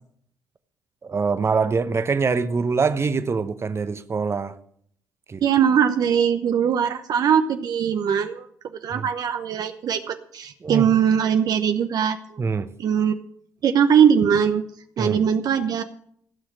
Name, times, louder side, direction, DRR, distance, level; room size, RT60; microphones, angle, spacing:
voice 1, 1.0-4.6 5.3-5.4 8.9-9.1 10.6-10.9 12.4-12.7 15.0-15.2, right 4 dB, 35° right, 1.0 m, -24 dB
voice 2, 5.4-8.5 8.8-12.4 12.8-13.1 13.6-14.6 15.0-15.8, right 8 dB, 55° right, 0.9 m, -21 dB
16.0 x 6.4 x 7.5 m
hypercardioid pair, 50°, 8 cm